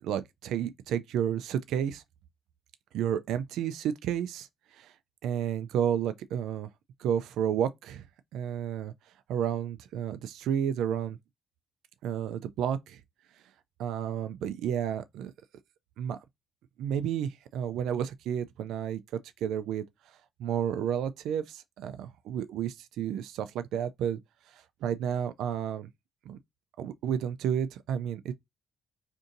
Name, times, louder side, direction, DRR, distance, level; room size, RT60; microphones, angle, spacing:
voice 1, 0.0-2.0 2.9-4.5 4.7-4.9 5.2-6.7 7.0-8.0 8.3-8.9 9.3-11.2 12.0-13.0 13.8-15.3 16.0-16.2 16.8-19.8 20.4-24.2 24.5-25.9 26.3-26.4 26.8-28.3, right 9 dB, 85° right, 0.3 m, -31 dB
2.6 x 2.5 x 3.8 m
cardioid pair, 90°, 0 cm